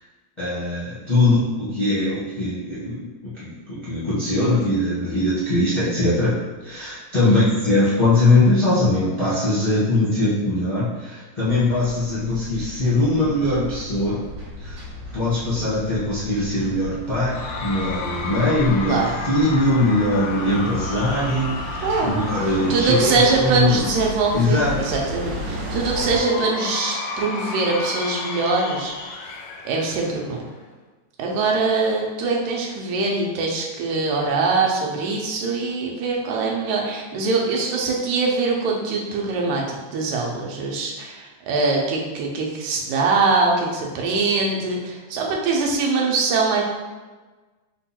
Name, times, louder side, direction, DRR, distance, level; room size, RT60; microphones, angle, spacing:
voice 1, 0.4-14.2 14.6-14.8 15.1-23.8 24.3-24.9, left 2 dB, 40° left, -11 dB, 0.4 m, -21 dB
sound 1, 11.4-26.2, left 1 dB, 65° right, 2.3 m, -34 dB
Cheering / Crowd, 17.3-24.6 25.9-30.6, left 3 dB, 80° left, 1.6 m, -33 dB
voice 2, 21.8-22.3 22.7-29.3 29.7-30.4 31.2-46.6, right 3 dB, 85° right, -1 dB, 2.2 m, -23 dB
5.3 x 2.3 x 4.2 m, 1.3 s
omnidirectional pair, 3.3 m